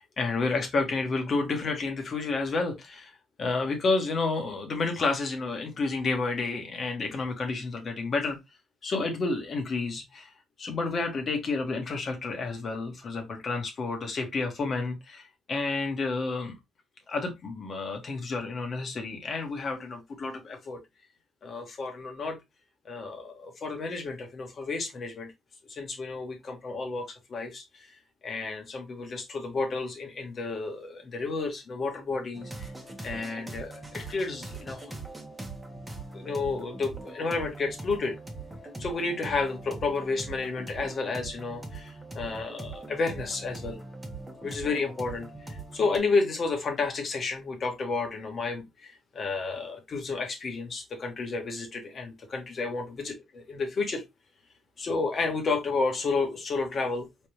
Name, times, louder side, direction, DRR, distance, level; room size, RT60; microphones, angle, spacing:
voice 1, 0.0-3.1 3.4-8.4 8.8-10.3 10.6-16.5 17.1-20.8 21.4-22.4 22.8-25.3 25.7-27.9 28.2-32.7 33.0-35.0 36.1-38.1 38.8-43.8 44.4-53.1 53.5-54.0 54.8-57.1, left 3 dB, 50° left, 1.7 m, -31 dB
sound 1, 32.3-46.0, right 3 dB, 15° right, 1.4 m, -41 dB
4.4 x 3.4 x 3.1 m
cardioid pair, 90°, 0 cm